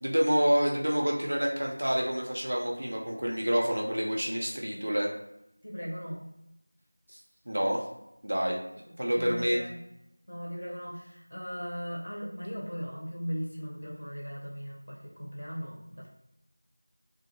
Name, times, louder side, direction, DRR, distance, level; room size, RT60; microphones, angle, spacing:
voice 1, 0.0-5.1 7.1-7.2 7.5-7.8 8.2-8.6 9.0-9.6, equal, 35° right, -1 dB, 0.4 m, -28 dB
voice 2, 5.6-6.3 8.9-9.8 10.3-16.1, equal, 50° left, -3 dB, 0.9 m, -38 dB
2.7 x 2.5 x 2.6 m, 0.84 s
figure-of-eight pair, 175°, 0 cm